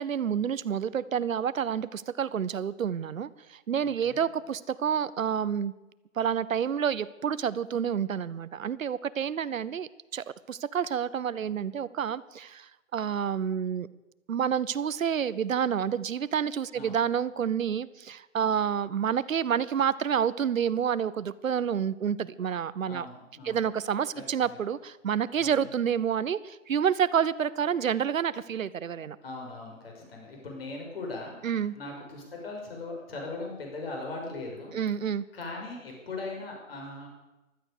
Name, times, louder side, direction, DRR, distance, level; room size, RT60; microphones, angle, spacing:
voice 1, 0.0-5.7 6.2-13.9 14.3-23.1 23.4-29.2 31.4-31.7 34.7-35.2, right 8 dB, 80° right, 17 dB, 0.9 m, -29 dB
voice 2, 3.8-4.2 16.7-17.0 22.9-23.7 24.4-24.6 25.4-25.6 29.2-34.7 35.3-37.1, left 3 dB, 45° left, 1 dB, 6.1 m, -39 dB
15.5 x 12.5 x 6.7 m, 1.0 s
hypercardioid pair, 170°, 40 cm